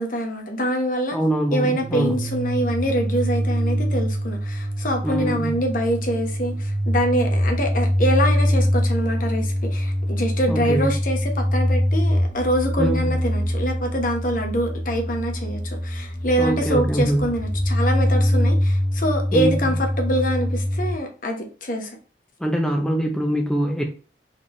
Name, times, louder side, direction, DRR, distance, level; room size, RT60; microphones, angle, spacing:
voice 1, 0.0-1.2 1.5-22.0, equal, 50° left, 1.1 m, -25 dB
voice 2, 1.1-2.2 5.0-5.6 10.5-10.9 12.8-13.1 16.4-17.3 19.3-19.6 22.4-23.8, right 1 dB, 5° left, 0.5 m, -23 dB
sound 1, 1.7-20.9, equal, 30° left, 1.5 m, -23 dB
4.2 x 3.4 x 3.0 m
head